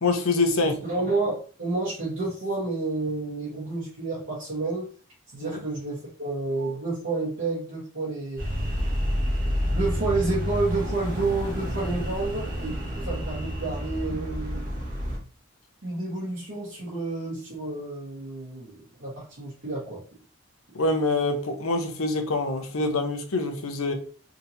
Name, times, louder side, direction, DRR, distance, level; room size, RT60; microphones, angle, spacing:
voice 1, 0.0-0.8 5.3-5.6 20.7-23.9, left 2 dB, 80° left, 5 dB, 0.7 m, -25 dB
voice 2, 0.8-4.9 5.3-8.4 9.7-14.7 15.8-20.0, right 3 dB, 65° right, -7 dB, 1.2 m, -30 dB
sound 1, 8.4-15.2, equal, 40° right, 1.3 m, -29 dB
3.6 x 2.8 x 2.7 m, 0.39 s
head